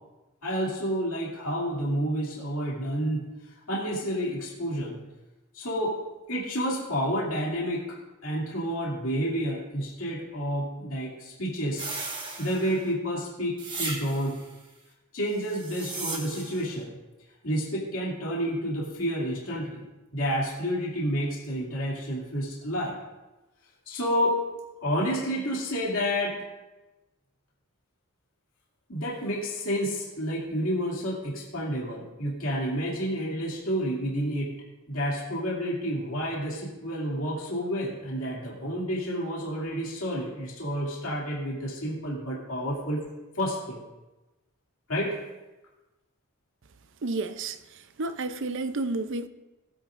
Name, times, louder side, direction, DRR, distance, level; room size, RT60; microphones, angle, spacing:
voice 1, 0.4-3.3 3.7-5.0 5.5-6.0 6.3-8.0 8.2-11.9 12.4-14.4 15.1-17.0 17.4-19.8 20.1-23.0 23.9-24.4 24.8-26.3 28.9-34.5 34.9-43.0 43.3-43.8 44.9-45.2, equal, 65° left, 2.6 m, -30 dB
sound 1, 11.7-12.9 13.6-14.5 15.4-16.7, right 3 dB, 20° right, 1.4 m, -36 dB
voice 2, 47.0-49.3, right 3 dB, 55° right, 0.6 m, -31 dB
20.0 x 8.8 x 2.6 m
head